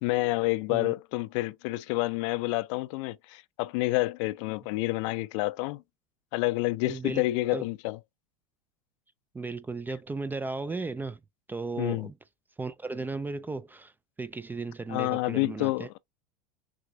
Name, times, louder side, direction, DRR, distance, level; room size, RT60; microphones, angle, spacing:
voice 1, 0.0-5.8 6.3-8.0 11.8-12.1 14.9-16.0, left 20 dB, 60° left, 0.5 m, -29 dB
voice 2, 6.9-7.3 7.5-7.7 9.3-11.2 11.5-12.2 12.6-13.9 14.2-15.9, right 3 dB, 10° right, 0.3 m, -35 dB
6.2 x 2.6 x 2.6 m
hypercardioid pair, 105°, 18 cm